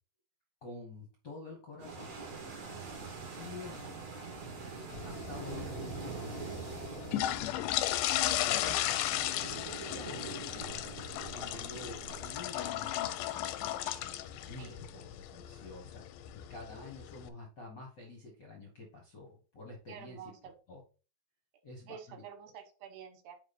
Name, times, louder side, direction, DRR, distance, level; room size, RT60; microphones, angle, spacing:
voice 1, 0.6-2.2 3.4-4.0 5.0-6.5 7.0-7.7 8.6-9.0 9.8-10.5 11.3-13.4 13.9-16.1 16.3-20.3 20.7-20.8 21.6-22.2, left 3 dB, 50° left, 0 dB, 1.3 m, -48 dB
sound 1, 1.8-12.4, right 4 dB, 50° right, 2.9 m, -44 dB
sound 2, 4.9-17.3, left 13 dB, 80° left, 2.0 m, -36 dB
voice 2, 19.9-20.5 21.9-23.4, right 8 dB, 80° right, 7 dB, 2.8 m, -48 dB
9.3 x 3.7 x 4.2 m, 0.34 s
omnidirectional pair, 4.0 m